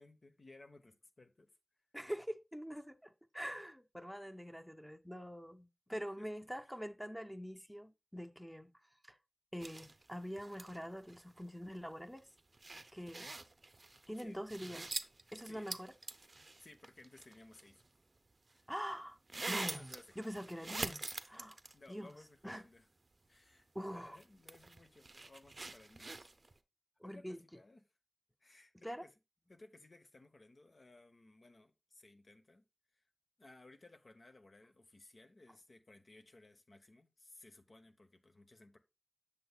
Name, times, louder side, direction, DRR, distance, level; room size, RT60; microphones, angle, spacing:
voice 1, 0.0-1.5 5.9-6.3 12.8-13.0 14.2-14.4 15.5-15.7 16.6-17.8 18.5-18.7 19.6-20.2 21.1-21.4 21.7-22.9 23.3-26.2 27.0-27.8 28.4-29.1 29.5-32.6 33.0-33.1 33.4-38.8, left 2 dB, 65° left, 0.9 m, -60 dB
voice 2, 1.9-8.7 9.0-9.2 9.5-12.3 12.9-13.3 14.1-14.9 15.3-15.9 18.7-19.2 19.5-21.6 21.9-22.1 22.4-22.7 23.7-24.2 27.0-27.4 28.8-29.0, equal, 5° left, 0.7 m, -44 dB
sound 1, 9.6-11.5 11.7-11.8 12.1-17.9 18.5-18.6 19.3-22.1 22.5-22.6 24.1-26.6, right 2 dB, 55° right, 0.5 m, -45 dB
7.7 x 6.8 x 2.3 m
wide cardioid pair, 60°, 0 cm